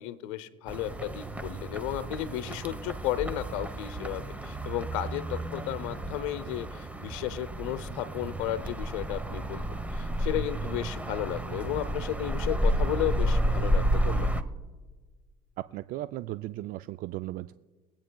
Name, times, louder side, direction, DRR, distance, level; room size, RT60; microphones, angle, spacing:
voice 1, 0.0-9.7 9.9-14.3, left 12 dB, 85° left, 12 dB, 0.7 m, -34 dB
sound 1, 0.7-14.4, right 1 dB, 10° right, 1.0 m, -31 dB
voice 2, 15.7-17.5, right 15 dB, 60° right, 12 dB, 0.4 m, -36 dB
22.5 x 8.9 x 2.3 m, 1.3 s
supercardioid pair, 85°, 16 cm